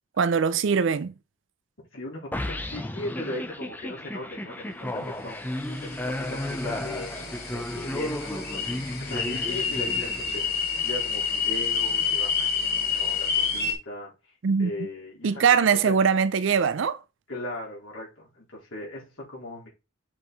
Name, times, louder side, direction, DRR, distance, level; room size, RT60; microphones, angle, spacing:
voice 1, 0.2-1.1 14.4-14.9 15.2-17.0, right 6 dB, 60° right, 0.4 m, -22 dB
voice 2, 1.9-14.1 14.6-15.4 15.8-15.9 17.3-19.7, left 1 dB, 70° left, 3.9 m, -38 dB
sound 1, 2.3-10.6, left 1 dB, 10° left, 0.6 m, -34 dB
sound 2, 5.6-13.7, left 6 dB, 50° left, 2.2 m, -29 dB
7.3 x 4.7 x 4.0 m
head